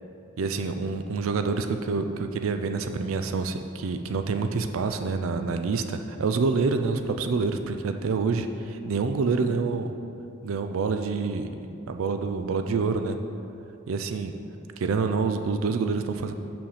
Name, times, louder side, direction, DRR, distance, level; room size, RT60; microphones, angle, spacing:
voice 1, 0.4-9.9 10.4-11.5 11.9-13.2 13.9-14.3 14.8-16.3, right 4 dB, 90° right, 7 dB, 0.4 m, -27 dB
7.1 x 5.9 x 4.9 m, 2.7 s
head